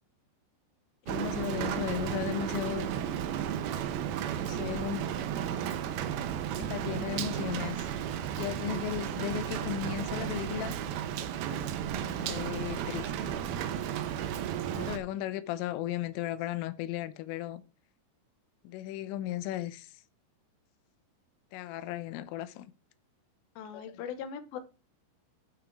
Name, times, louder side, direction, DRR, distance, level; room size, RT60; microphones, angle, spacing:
voice 1, 1.1-2.9 4.3-5.0 6.6-7.9 8.4-10.8 12.0-13.4 14.7-17.6 18.6-19.9 21.5-22.7, left 12 dB, 85° left, 3.3 m, -35 dB
Rain, 1.1-15.0, right 9 dB, 85° right, 2.1 m, -33 dB
voice 2, 23.6-24.6, left 7 dB, 70° left, 2.4 m, -39 dB
12.0 x 6.1 x 4.7 m
omnidirectional pair, 5.7 m